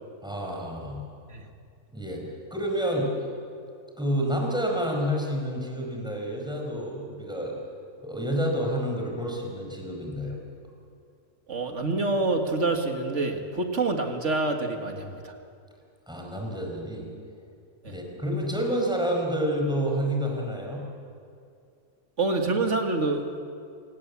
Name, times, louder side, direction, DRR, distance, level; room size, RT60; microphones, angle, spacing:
voice 1, 0.2-1.0 1.9-2.2 2.5-3.1 4.0-7.5 8.0-10.4 16.1-17.1 17.9-20.8, equal, ahead, 0 dB, 4.9 m, -29 dB
voice 2, 11.5-15.3 17.8-18.0 22.2-23.3, right 3 dB, 45° right, 4 dB, 2.2 m, -27 dB
27.0 x 18.0 x 8.5 m, 2.4 s
omnidirectional pair, 1.7 m